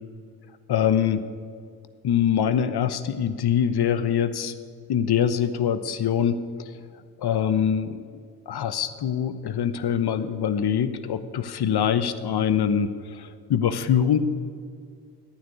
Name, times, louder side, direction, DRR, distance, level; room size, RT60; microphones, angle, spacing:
voice 1, 0.7-1.2 2.0-4.5 4.9-6.4 7.2-8.0 8.5-12.9 13.2-14.2, left 8 dB, 55° left, 12 dB, 1.1 m, -23 dB
11.5 x 9.3 x 9.4 m, 2.3 s
hypercardioid pair, 40°, 46 cm